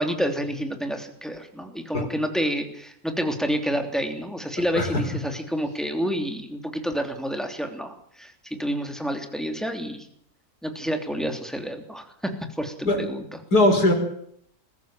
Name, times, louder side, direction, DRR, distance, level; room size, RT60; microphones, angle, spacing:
voice 1, 0.0-10.1 10.6-13.3, equal, ahead, 6 dB, 3.0 m, -29 dB
voice 2, 4.7-5.1 12.9-13.1 13.5-13.9, left 1 dB, 85° left, 4 dB, 5.1 m, -20 dB
21.5 x 14.5 x 9.0 m, 0.67 s
omnidirectional pair, 1.6 m